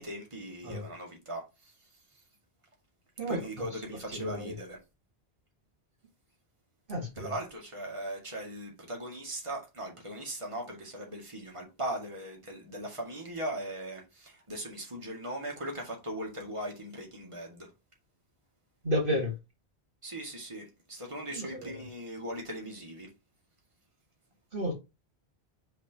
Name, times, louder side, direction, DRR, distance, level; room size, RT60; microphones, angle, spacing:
voice 1, 0.0-1.7 3.3-4.8 7.2-17.7 20.0-23.1, right 1 dB, 30° right, 2.1 m, -39 dB
voice 2, 3.2-3.7 4.1-4.5 6.9-7.3 18.8-19.3 21.3-21.8 24.5-24.7, equal, 55° right, 2.1 m, -32 dB
5.0 x 4.3 x 5.9 m
omnidirectional pair, 1.1 m